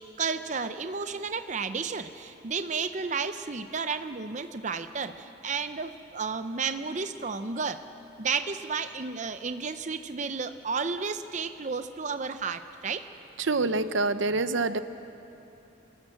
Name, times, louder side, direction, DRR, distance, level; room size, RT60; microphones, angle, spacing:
voice 1, 0.2-7.8 8.2-13.1, right 5 dB, 40° right, 10 dB, 0.6 m, -32 dB
voice 2, 13.4-14.8, right 3 dB, 70° right, 12 dB, 0.7 m, -26 dB
28.0 x 13.0 x 7.6 m, 2.9 s
head